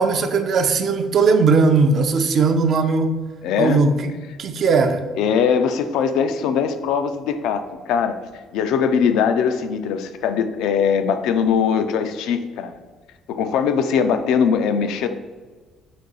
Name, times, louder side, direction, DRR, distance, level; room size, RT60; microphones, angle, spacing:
voice 1, 0.0-3.2 3.6-4.1 4.4-5.0, right 4 dB, 55° right, 8 dB, 0.4 m, -18 dB
voice 2, 3.4-3.8 5.2-8.2 8.5-12.8 13.3-15.1, left 7 dB, 85° left, 9 dB, 0.3 m, -21 dB
4.1 x 2.6 x 3.8 m, 1.4 s
cardioid pair, 90°, 0 cm